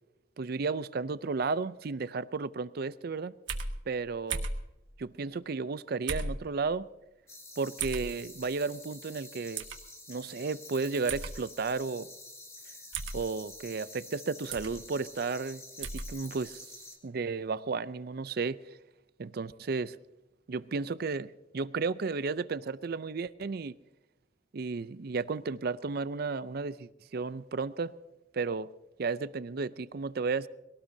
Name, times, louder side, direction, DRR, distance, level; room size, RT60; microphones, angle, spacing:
voice 1, 0.4-3.3 3.9-4.4 5.0-6.9 7.6-9.6 10.1-12.1 13.1-16.7 17.0-18.6 19.2-20.0 20.5-23.7 24.5-27.9 28.3-28.7 29.0-30.5, right 4 dB, 55° right, 0.5 m, -33 dB
sound 1, 3.5-3.7 4.3-4.6 6.1-6.4 7.8-8.1 9.6-9.8 11.1-11.3 12.9-13.2 14.5-14.7 15.8-16.1, right 4 dB, 85° right, 1.4 m, -34 dB
sound 2, 7.3-17.0, left 2 dB, 15° left, 2.3 m, -49 dB
22.0 x 18.0 x 2.7 m
head